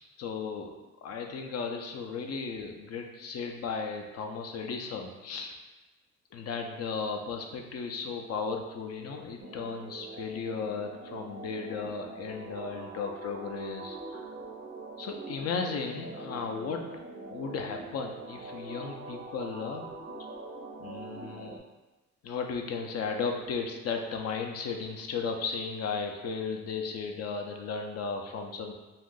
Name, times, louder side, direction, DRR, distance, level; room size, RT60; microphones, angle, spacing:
voice 1, 0.2-0.7 1.0-5.5 6.3-14.3 15.0-16.8 17.3-19.9 20.8-21.6 22.2-28.7, left 5 dB, 55° left, 3 dB, 0.5 m, -35 dB
sound 1, 9.4-21.6, right 2 dB, 40° right, 0.5 m, -43 dB
2.7 x 2.4 x 3.7 m, 1.1 s
cardioid pair, 90°, 30 cm